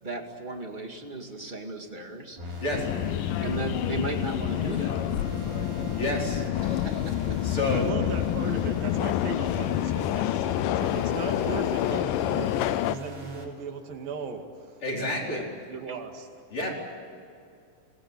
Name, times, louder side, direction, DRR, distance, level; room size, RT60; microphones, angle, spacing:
voice 1, 0.0-2.4 3.4-5.0 6.6-7.4 14.9-15.1 15.9-16.0, right 2 dB, 15° right, 3 dB, 1.7 m, -36 dB
sound 1, 2.4-13.5, equal, 55° right, 4.7 m, -39 dB
voice 2, 2.6-2.9 6.0-6.4 7.4-7.9 14.8-15.4 16.5-16.7, left 1 dB, 35° left, -2 dB, 5.5 m, -29 dB
Subway metro underground, 2.7-13.0, left 13 dB, 80° left, 2.2 m, -28 dB
voice 3, 7.7-14.8 15.3-16.3, right 5 dB, 75° right, 4 dB, 4.0 m, -38 dB
25.5 x 20.0 x 9.2 m, 2.5 s
omnidirectional pair, 4.1 m